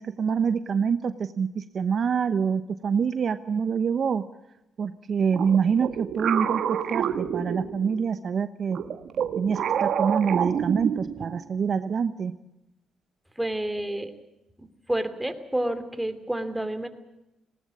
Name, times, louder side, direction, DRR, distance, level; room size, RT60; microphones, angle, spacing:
voice 1, 0.0-4.2 4.8-8.8 9.4-12.3, right 6 dB, 50° right, 11 dB, 0.9 m, -26 dB
sound 1, 5.3-8.1 8.7-11.4, right 8 dB, 65° right, 1.4 m, -28 dB
voice 2, 13.4-14.1 14.6-16.9, right 1 dB, 5° right, 8 dB, 2.7 m, -29 dB
19.5 x 18.0 x 8.5 m, 0.91 s
cardioid pair, 90°, 0 cm